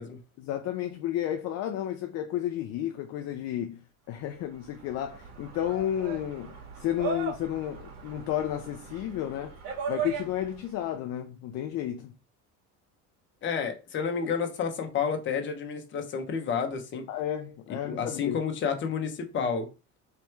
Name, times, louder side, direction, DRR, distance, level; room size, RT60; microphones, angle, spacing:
voice 1, 0.4-3.8 4.1-9.6 9.9-12.1 17.1-18.4, left 11 dB, 55° left, 0.5 m, -32 dB
sound 1, 4.4-10.7, right 5 dB, 75° right, 1.6 m, -38 dB
voice 2, 13.4-17.0 17.8-19.7, left 6 dB, 35° left, 1.0 m, -30 dB
3.4 x 3.0 x 4.5 m
cardioid pair, 150°, 31 cm